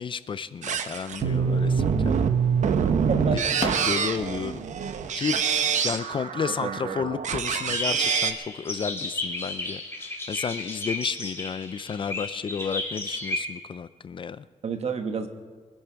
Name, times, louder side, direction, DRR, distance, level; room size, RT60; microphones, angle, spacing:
voice 1, 0.0-2.2 3.3-3.4 3.8-4.6 5.1-5.4 5.8-14.4, left 6 dB, 40° left, 15 dB, 0.4 m, -32 dB
sound 1, 0.6-8.3, right 6 dB, 75° right, 0.9 m, -25 dB
sound 2, 1.7-7.4, left 4 dB, 65° left, 1.7 m, -42 dB
voice 2, 3.1-3.6 6.6-7.0 14.6-15.3, right 5 dB, 55° right, 7 dB, 1.2 m, -30 dB
sound 3, 7.4-13.4, left 2 dB, 20° left, 2.1 m, -33 dB
23.5 x 11.0 x 4.6 m, 1.5 s
wide cardioid pair, 160°, 13 cm